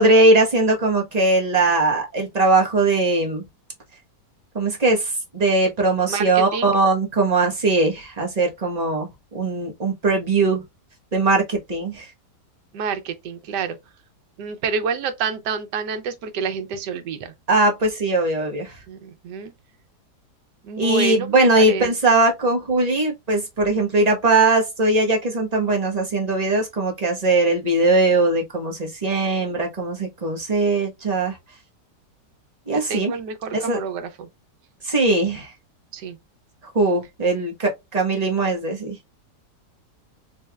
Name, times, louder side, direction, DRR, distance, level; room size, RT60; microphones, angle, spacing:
voice 1, 0.0-3.4 4.5-9.1 9.3-10.6 11.1-12.1 17.5-18.8 20.8-31.4 32.7-33.1 33.5-33.8 34.8-35.5 36.7-39.0, right 2 dB, 30° right, 1.0 m, -20 dB
voice 2, 6.1-6.7 12.7-13.8 14.4-17.3 18.9-19.5 20.6-21.9 32.7-34.3 35.9-36.2, right 5 dB, 80° right, 1.4 m, -28 dB
3.9 x 3.2 x 2.2 m
omnidirectional pair, 1.8 m